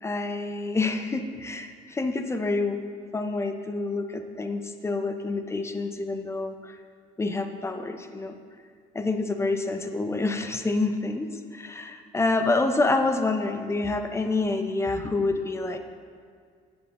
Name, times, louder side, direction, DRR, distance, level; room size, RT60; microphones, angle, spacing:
voice 1, 0.0-2.8 3.1-6.8 7.2-8.4 8.9-15.8, left 3 dB, 15° left, 7 dB, 0.6 m, -27 dB
8.0 x 7.5 x 4.2 m, 2.1 s
cardioid pair, 110°, 17 cm